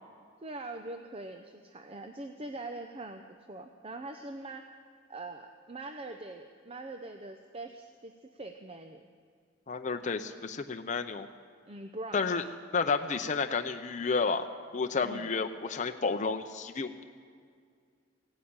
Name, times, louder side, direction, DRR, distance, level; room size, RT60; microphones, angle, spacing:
voice 1, 0.4-4.7 5.1-9.0 11.7-12.5 15.0-15.3, right 2 dB, 30° right, 6 dB, 0.6 m, -43 dB
voice 2, 9.7-11.3 12.1-12.4 12.7-17.0, left 4 dB, 40° left, 6 dB, 0.6 m, -31 dB
16.5 x 9.8 x 8.8 m, 2.1 s
head